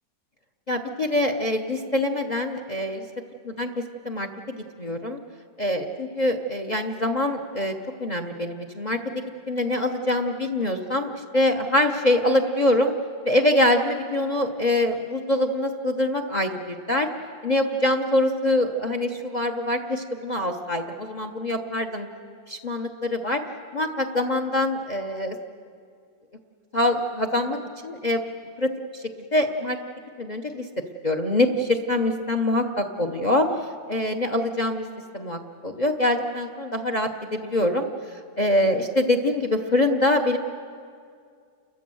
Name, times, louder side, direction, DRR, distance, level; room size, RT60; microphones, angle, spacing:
voice 1, 0.7-3.0 3.4-3.7 4.0-5.2 5.6-7.7 8.0-9.0 9.5-12.9 13.2-17.1 17.4-22.1 22.5-23.4 23.7-25.4 26.7-28.2 28.6-29.0 29.3-29.8 30.2-30.6 31.0-33.5 33.9-34.9 35.1-37.9 38.4-40.4, left 1 dB, 40° left, 5 dB, 0.6 m, -24 dB
30.0 x 14.0 x 7.7 m, 2.3 s
omnidirectional pair, 2.1 m